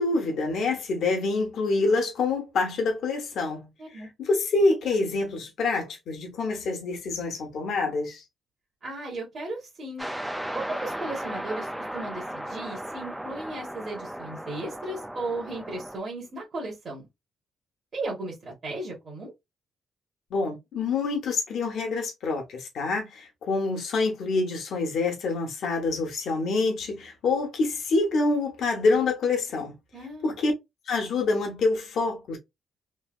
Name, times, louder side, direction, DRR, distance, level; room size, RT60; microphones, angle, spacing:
voice 1, 0.0-3.7 3.9-8.2 20.3-29.7 30.2-30.5 30.9-32.4, left 3 dB, 55° left, 1.1 m, -26 dB
voice 2, 3.8-4.1 8.8-10.1 10.5-17.1 17.9-19.3 29.9-30.3, right 2 dB, 30° right, 1.2 m, -36 dB
sound 1, 10.0-16.0, right 1 dB, 5° right, 0.4 m, -36 dB
3.2 x 2.8 x 2.4 m
cardioid pair, 180°, 0 cm